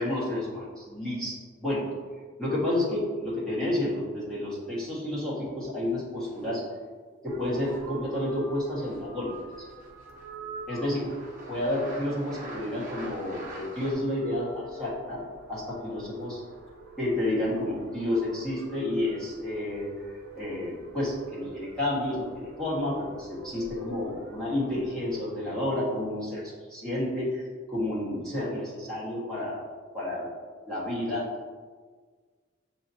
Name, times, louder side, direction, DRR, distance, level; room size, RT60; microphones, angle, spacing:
voice 1, 0.0-1.8 2.4-6.6 7.2-9.6 10.7-11.1 11.5-16.4 17.0-19.9 20.3-27.4 27.7-29.6 29.9-30.3 30.6-31.3, left 1 dB, 5° left, -10 dB, 1.4 m, -30 dB
sound 1, 6.2-6.7 7.6-7.9 8.9-9.0 9.3-10.4 10.8-13.9, right 1 dB, 40° right, 0.8 m, -45 dB
sound 2, 7.3-25.2, right 2 dB, 80° right, 0.7 m, -47 dB
6.8 x 2.9 x 2.7 m, 1.5 s
head